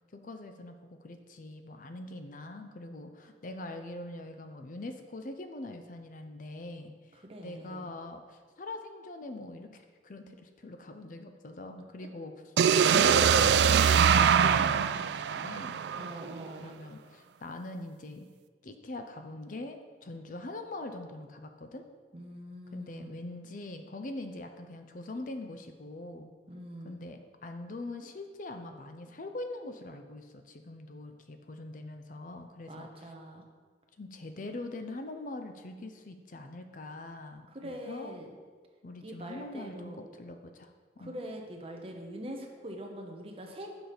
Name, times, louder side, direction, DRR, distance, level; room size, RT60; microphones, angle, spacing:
voice 1, 0.1-12.3 12.9-15.8 16.6-18.3 18.6-21.9 22.7-26.3 26.8-33.1 34.0-38.2 38.8-41.2, left 2 dB, 45° left, 6 dB, 0.5 m, -43 dB
voice 2, 7.1-7.9 15.9-16.7 22.1-23.2 26.5-27.0 32.7-33.4 37.5-38.4 39.0-40.0 41.0-43.7, equal, 35° right, 1 dB, 1.0 m, -43 dB
sound 1, 12.6-16.5, right 7 dB, 70° right, 0.3 m, -23 dB
7.1 x 6.0 x 5.0 m, 1.5 s
head